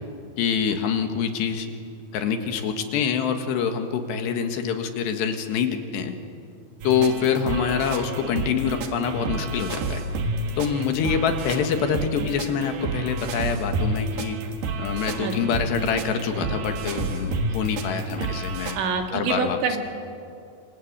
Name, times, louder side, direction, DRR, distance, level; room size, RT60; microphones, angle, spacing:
voice 1, 0.4-1.7 2.1-6.1 6.8-10.0 10.6-14.4 14.8-18.8 19.1-19.6, left 7 dB, 75° left, 6 dB, 3.8 m, -25 dB
sound 1, 6.8-18.8, right 3 dB, 65° right, 3.4 m, -30 dB
voice 2, 18.7-19.8, right 5 dB, 85° right, 4 dB, 4.5 m, -26 dB
26.0 x 26.0 x 8.7 m, 2.4 s
omnidirectional pair, 5.1 m